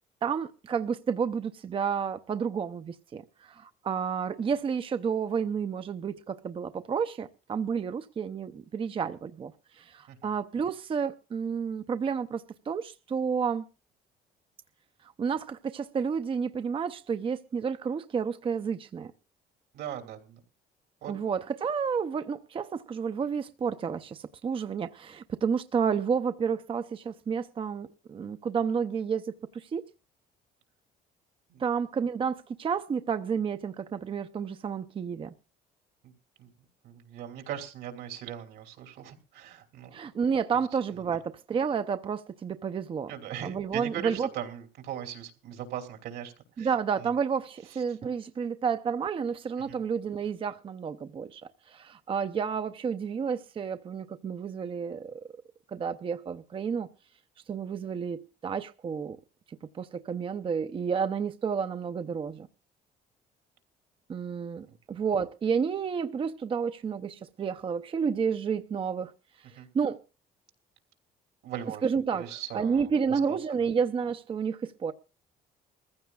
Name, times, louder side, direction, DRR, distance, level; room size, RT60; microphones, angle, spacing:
voice 1, 0.2-13.7 15.2-19.1 21.1-29.8 31.6-35.3 39.9-43.1 43.4-44.3 46.6-51.4 51.7-55.2 55.7-56.9 57.5-59.2 59.5-62.5 64.1-69.1 69.7-70.0 71.8-72.3 72.5-74.9, right 6 dB, 30° right, 0.6 m, -30 dB
voice 2, 19.7-20.4 21.0-21.2 31.5-31.6 36.4-36.5 36.8-39.9 40.5-40.6 43.1-46.7 47.0-47.1 49.7-49.8 69.6-69.7 71.4-71.9 72.1-73.7, right 10 dB, 85° right, 3.0 m, -39 dB
22.0 x 15.0 x 2.3 m
cardioid pair, 110°, 17 cm